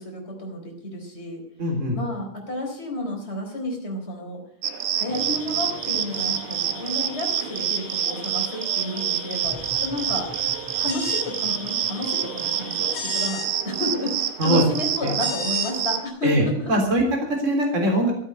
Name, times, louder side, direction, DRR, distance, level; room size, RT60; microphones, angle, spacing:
voice 1, 0.0-1.4 1.9-4.4 5.0-10.3 10.8-16.7, left 1 dB, 20° left, 1 dB, 4.1 m, -31 dB
voice 2, 1.6-2.0 14.4-14.6 15.0-15.1 16.2-17.0 17.3-18.1, right 1 dB, 20° right, 2 dB, 3.7 m, -21 dB
sound 1, 4.6-16.0, right 10 dB, 90° right, 1.1 m, -27 dB
sound 2, 5.1-13.3, left 4 dB, 50° left, 4.0 m, -41 dB
sound 3, 10.9-11.3 12.9-13.5 15.2-15.7, left 5 dB, 85° left, 3.9 m, -32 dB
15.5 x 8.3 x 8.3 m, 0.63 s
omnidirectional pair, 3.6 m